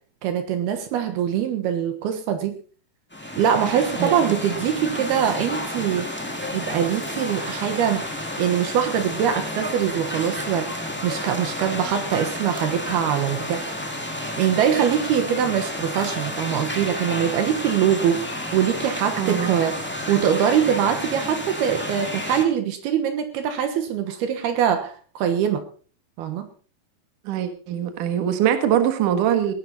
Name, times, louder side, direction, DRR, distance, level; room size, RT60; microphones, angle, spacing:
voice 1, 0.2-2.6 3.4-6.1 6.5-13.6 14.4-19.8 20.1-25.6 26.2-26.5, right 9 dB, 75° right, 7 dB, 3.2 m, -23 dB
sound 1, 3.1-22.4, left 1 dB, 10° left, 0.6 m, -31 dB
voice 2, 4.0-4.4 19.2-19.6 27.2-29.5, right 10 dB, 60° right, 7 dB, 2.8 m, -23 dB
18.0 x 11.0 x 4.1 m, 0.40 s
omnidirectional pair, 4.7 m